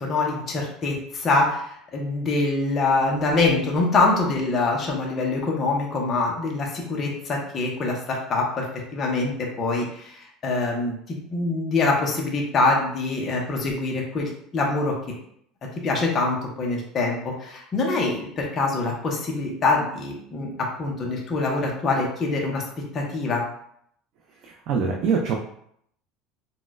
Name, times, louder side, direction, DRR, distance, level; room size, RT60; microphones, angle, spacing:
voice 1, 0.0-8.7 8.9-14.9 15.8-20.5 20.8-22.6 22.9-23.4, left 3 dB, 25° left, -2 dB, 0.5 m, -24 dB
voice 2, 24.4-25.4, right 5 dB, 45° right, 1 dB, 0.3 m, -24 dB
4.1 x 2.1 x 2.3 m, 0.69 s
cardioid pair, 175°, 0 cm